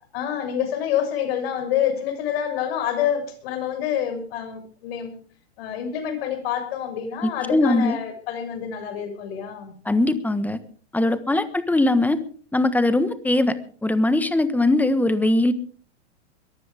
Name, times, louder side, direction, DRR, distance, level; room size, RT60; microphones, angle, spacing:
voice 1, 0.1-5.1 5.6-9.7, left 9 dB, 60° left, 6 dB, 6.6 m, -27 dB
voice 2, 7.2-8.0 9.8-10.6 10.9-12.2 12.5-13.6 13.8-15.5, left 2 dB, 5° left, 12 dB, 1.4 m, -20 dB
22.5 x 14.5 x 3.6 m, 0.42 s
hypercardioid pair, 120°, 33 cm